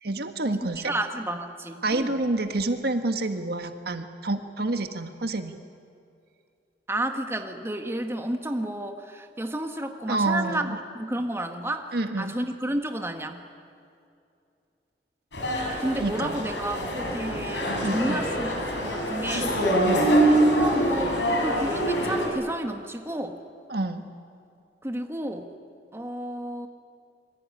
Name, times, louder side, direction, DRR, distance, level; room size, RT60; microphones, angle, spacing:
voice 1, 0.0-0.9 1.8-5.6 10.1-10.8 11.9-12.3 16.0-16.4 17.8-18.2 19.8-20.1 23.7-24.0, right 2 dB, 65° right, 7 dB, 1.6 m, -28 dB
voice 2, 0.6-2.1 6.9-11.9 12.2-13.4 15.8-19.5 20.6-23.4 24.8-25.5 25.9-26.7, right 1 dB, 15° right, 5 dB, 1.7 m, -31 dB
sound 1, 15.3-22.3, right 1 dB, 85° left, 6.9 m, -24 dB
26.5 x 23.0 x 9.7 m, 2.5 s
head